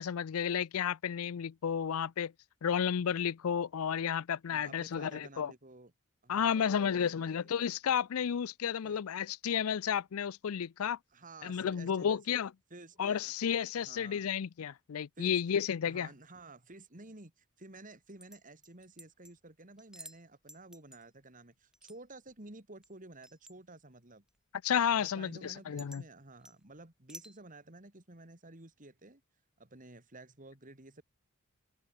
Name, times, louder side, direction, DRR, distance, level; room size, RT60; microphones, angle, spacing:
voice 1, 0.0-2.3 2.6-5.5 6.3-11.0 11.4-12.5 13.0-16.1 24.6-26.0, left 8 dB, 70° left, 0.4 m, -32 dB
voice 2, 4.5-5.9 6.2-7.7 8.8-9.0 11.1-12.4 12.7-13.3 13.7-14.2 15.2-15.4 15.8-24.2 24.9-29.2 29.6-31.0, right 2 dB, 35° right, 2.6 m, -52 dB
sound 1, 18.1-19.3 19.8-20.2 20.5-21.0 21.7-22.0 22.3-22.4 22.8-22.9 23.2-23.5 24.3-24.4 25.0-25.1 25.4-26.0 26.3-26.6 27.1-27.4, right 1 dB, 5° right, 2.4 m, -52 dB
head